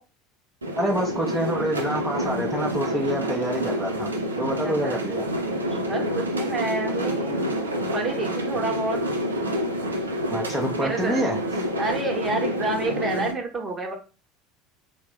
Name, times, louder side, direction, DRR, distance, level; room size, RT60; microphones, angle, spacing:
sound 1, 0.6-13.3, equal, 90° right, 0.4 m, -28 dB
voice 1, 0.8-4.1 4.4-5.3 10.3-11.4, right 1 dB, 5° right, -2 dB, 0.6 m, -27 dB
voice 2, 4.4-5.0 5.9-7.5 7.9-9.0 10.7-11.2 11.8-13.9, right 3 dB, 30° right, 3 dB, 0.9 m, -29 dB
3.3 x 2.0 x 3.0 m, 0.33 s
hypercardioid pair, 75°, 0 cm